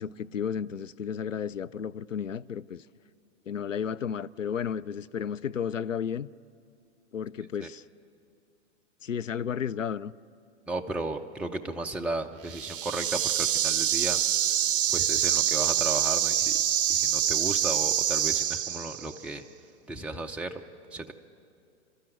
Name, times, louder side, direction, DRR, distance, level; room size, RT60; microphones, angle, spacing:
voice 1, 0.0-2.9 3.5-6.3 7.1-7.8 9.0-10.1, left 7 dB, 85° left, 0.5 m, -33 dB
voice 2, 10.7-14.2 14.9-16.5 16.9-19.4 19.9-20.5 20.9-21.1, right 2 dB, 5° right, 0.6 m, -34 dB
sound 1, 12.5-19.2, right 10 dB, 45° right, 0.7 m, -26 dB
29.0 x 13.0 x 9.1 m
figure-of-eight pair, 105°, 37 cm